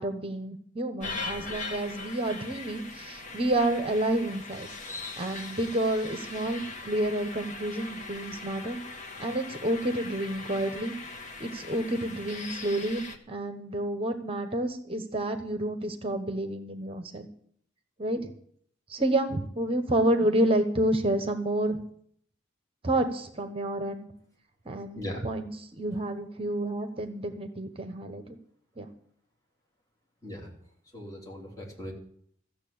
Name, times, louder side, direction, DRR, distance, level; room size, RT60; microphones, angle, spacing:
voice 1, 0.0-4.7 5.2-8.8 9.2-10.9 11.4-17.3 18.0-18.3 18.9-21.8 22.8-24.1 24.6-25.5 25.8-28.4 28.8-28.9, right 1 dB, 30° right, 7 dB, 1.1 m, -29 dB
sound 1, 1.0-13.2, left 3 dB, 40° left, 1.3 m, -40 dB
voice 2, 24.9-25.2 30.2-30.5 30.9-31.9, left 1 dB, 15° left, -2 dB, 3.3 m, -38 dB
14.0 x 7.1 x 8.7 m, 0.64 s
head